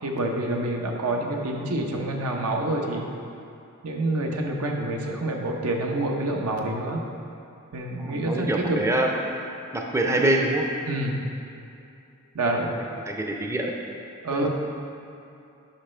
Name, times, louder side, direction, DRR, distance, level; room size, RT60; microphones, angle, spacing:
voice 1, 0.0-3.0 3.8-7.0 7.7-8.8 10.9-11.2 12.3-12.7 14.2-14.5, right 1 dB, 85° right, 1 dB, 0.9 m, -27 dB
voice 2, 8.0-9.1 9.7-10.7 12.6-12.7 13.1-13.7 14.3-14.5, right 1 dB, 15° right, 1 dB, 0.5 m, -25 dB
10.0 x 5.5 x 3.3 m, 2.6 s
head